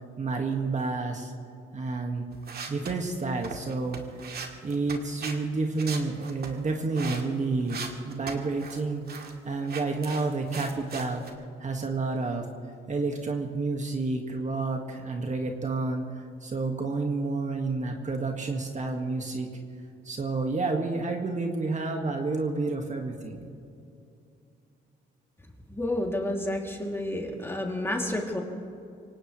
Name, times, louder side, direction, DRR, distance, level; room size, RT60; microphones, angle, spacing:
voice 1, 0.2-1.3 1.7-2.2 2.7-4.0 4.6-9.0 9.4-11.2 11.6-12.5 12.9-16.0 16.4-19.5 20.0-23.4, right 3 dB, 35° right, 2 dB, 1.8 m, -30 dB
sound 1, 2.3-5.4 5.8-7.2 7.6-8.8 9.1-9.4 9.7-11.3, right 5 dB, 50° right, 2.1 m, -38 dB
voice 2, 25.7-28.4, left 1 dB, 10° left, 0 dB, 2.8 m, -30 dB
25.0 x 18.0 x 3.3 m, 2.6 s
cardioid pair, 90°, 20 cm